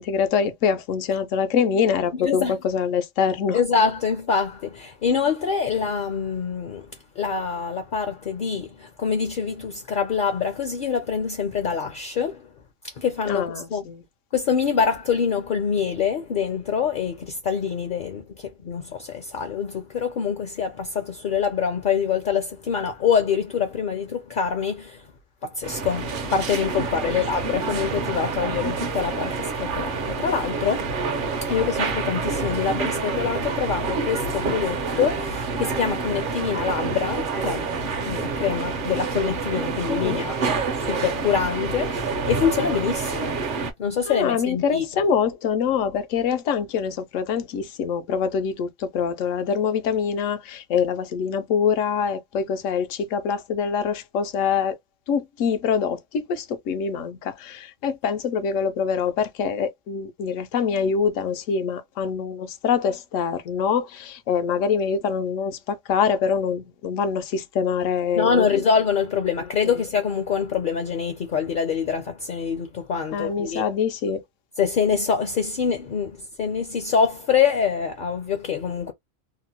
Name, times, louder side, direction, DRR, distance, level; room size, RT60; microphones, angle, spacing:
voice 1, 0.0-3.6 13.3-14.0 27.0-27.2 39.9-40.2 44.1-54.8 55.1-68.5 73.1-74.2, left 6 dB, 85° left, 1.0 m, -24 dB
voice 2, 2.1-2.5 3.5-12.5 12.8-13.8 14.3-25.1 25.4-31.0 31.4-37.7 38.0-40.4 40.7-43.4 43.8-44.9 68.2-73.6 74.6-78.9, left 6 dB, 55° left, 0.6 m, -25 dB
sound 1, 25.6-43.7, right 4 dB, 55° right, 0.6 m, -27 dB
2.9 x 2.1 x 2.7 m
omnidirectional pair, 1.3 m